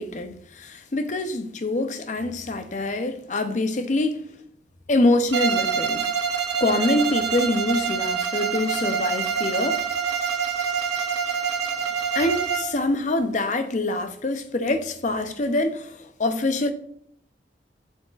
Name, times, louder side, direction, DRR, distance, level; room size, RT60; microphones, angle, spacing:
voice 1, 0.0-4.2 4.9-6.1 6.6-9.8 12.1-16.7, left 2 dB, 45° left, 0.6 m, -25 dB
Bowed string instrument, 5.3-12.8, right 7 dB, 80° right, 0.7 m, -26 dB
7.6 x 6.3 x 2.4 m
head